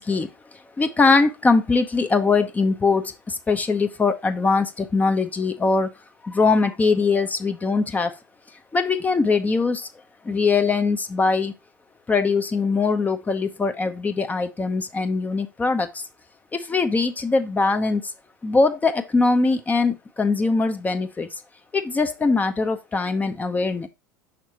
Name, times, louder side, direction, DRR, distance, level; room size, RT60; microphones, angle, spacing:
voice 1, 0.0-5.9 6.2-8.1 8.7-9.9 10.2-11.5 12.1-16.0 16.5-18.1 18.4-21.4 21.7-23.9, left 4 dB, 15° left, 0.7 m, -22 dB
6.3 x 5.9 x 2.8 m
figure-of-eight pair, 80°, 10 cm